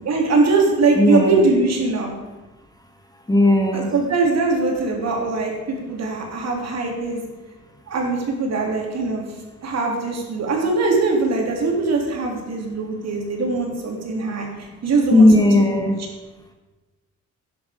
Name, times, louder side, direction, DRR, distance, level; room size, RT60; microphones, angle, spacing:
voice 1, 0.0-2.1 3.7-7.2 7.9-9.3 9.6-14.5 14.8-15.8, right 3 dB, 60° right, 0 dB, 3.4 m, -21 dB
voice 2, 0.9-1.5 3.3-3.9 15.1-16.0, left 1 dB, 15° left, 4 dB, 1.5 m, -15 dB
12.0 x 9.8 x 5.2 m, 1.2 s
cardioid pair, 90°, 30 cm